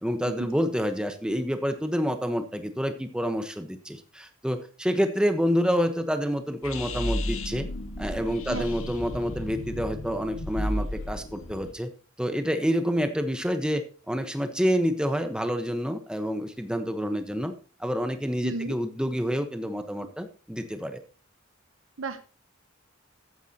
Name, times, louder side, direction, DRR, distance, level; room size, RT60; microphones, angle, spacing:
voice 1, 0.0-7.7 8.0-11.9 12.2-17.5 17.8-21.0, equal, 5° right, 7 dB, 1.1 m, -28 dB
sound 1, 6.6-11.7, left 1 dB, 80° left, 1.7 m, -33 dB
voice 2, 18.4-18.8 22.0-22.2, right 3 dB, 70° right, 10 dB, 0.9 m, -33 dB
14.5 x 9.2 x 2.9 m, 0.37 s
head